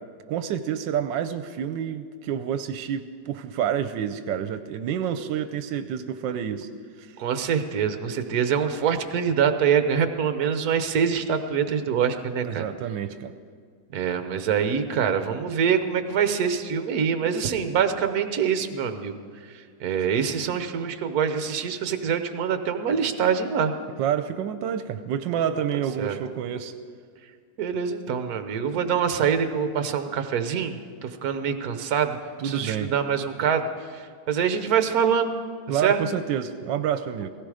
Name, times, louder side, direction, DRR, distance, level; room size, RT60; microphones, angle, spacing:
voice 1, 0.3-6.7 12.4-13.3 24.0-26.7 32.4-32.9 35.7-37.3, right 9 dB, 85° right, 10 dB, 1.3 m, -28 dB
voice 2, 7.2-12.7 13.9-19.1 19.8-23.7 25.7-26.2 27.6-30.8 31.0-32.2 32.4-33.7 33.9-35.3 35.7-36.0, right 7 dB, 60° right, 8 dB, 1.3 m, -25 dB
17.0 x 16.5 x 4.9 m, 2.1 s
omnidirectional pair, 2.0 m